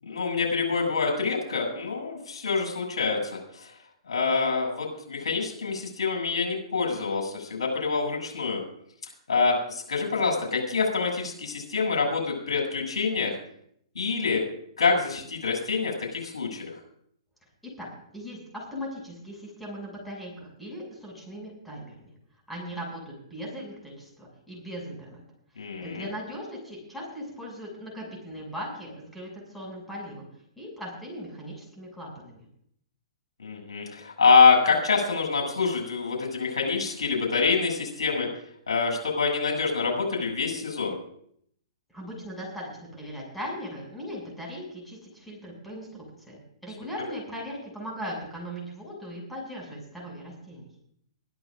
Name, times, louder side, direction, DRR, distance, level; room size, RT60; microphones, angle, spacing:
voice 1, 0.0-3.7 4.1-8.6 9.3-13.4 13.9-14.4 14.8-16.7 25.6-26.1 33.4-38.3 38.7-41.0, left 4 dB, 70° left, 1 dB, 7.9 m, -25 dB
voice 2, 18.1-22.1 22.5-25.2 25.8-30.3 30.6-32.4 41.9-50.7, equal, ahead, -3 dB, 7.2 m, -39 dB
24.5 x 14.0 x 2.7 m, 0.69 s
figure-of-eight pair, 120°, 3 cm